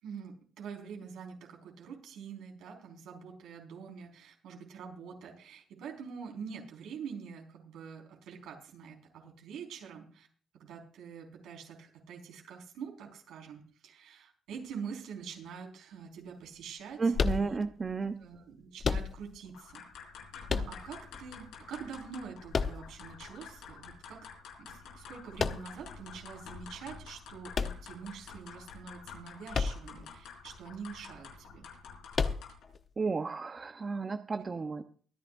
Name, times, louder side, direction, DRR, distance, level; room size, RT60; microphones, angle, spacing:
voice 1, 0.0-10.3 10.5-17.0 17.3-17.6 18.2-19.8 20.3-24.2 24.6-31.7, right 6 dB, 85° right, 2 dB, 4.9 m, -45 dB
voice 2, 17.0-18.2 33.0-34.8, right 4 dB, 35° right, 8 dB, 0.9 m, -32 dB
sound 1, 17.1-17.9 18.8-19.5 20.5-21.2 22.5-23.3 25.4-25.9 27.5-28.4 29.5-30.1 30.4-30.5 32.1-32.8, left 5 dB, 45° left, 0.9 m, -32 dB
sound 2, 19.5-32.7, left 6 dB, 85° left, 4.1 m, -49 dB
23.5 x 10.5 x 2.6 m, 0.41 s
cardioid pair, 90°, 0 cm